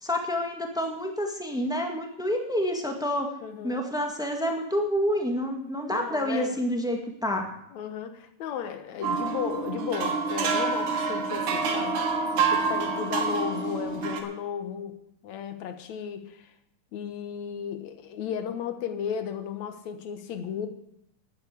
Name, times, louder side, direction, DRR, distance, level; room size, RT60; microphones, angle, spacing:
voice 1, 0.0-3.3 3.6-7.5, equal, ahead, 2 dB, 0.8 m, -28 dB
voice 2, 3.4-3.9 5.9-6.6 7.7-12.0 12.3-15.0 15.2-16.5 16.9-20.7, left 8 dB, 65° left, 8 dB, 2.4 m, -34 dB
sound 1, 9.0-14.2, right 5 dB, 75° right, 3.0 m, -27 dB
11.0 x 9.4 x 8.4 m, 0.76 s
omnidirectional pair, 3.6 m